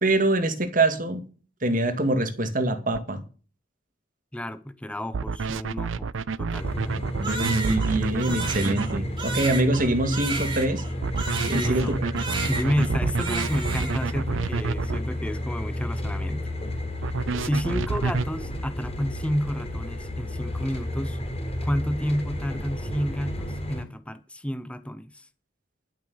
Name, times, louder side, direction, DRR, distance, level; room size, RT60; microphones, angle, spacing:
voice 1, 0.0-1.2 1.6-3.2 6.9-10.8 11.5-12.2, right 2 dB, 45° right, 2.0 m, -24 dB
sound 1, 2.9-3.0 5.1-9.0 11.0-15.0 17.0-18.3, right 4 dB, 90° right, 0.5 m, -29 dB
voice 2, 4.3-6.1 6.4-7.0 11.5-12.0 12.5-16.4 17.4-21.2 21.6-25.3, equal, 5° left, 0.7 m, -30 dB
sound 2, 6.6-23.8, left 1 dB, 30° left, 3.7 m, -32 dB
Crying sobbing, 7.2-11.9 12.2-12.9 13.2-14.1, right 3 dB, 25° right, 3.0 m, -33 dB
12.0 x 7.5 x 7.0 m
head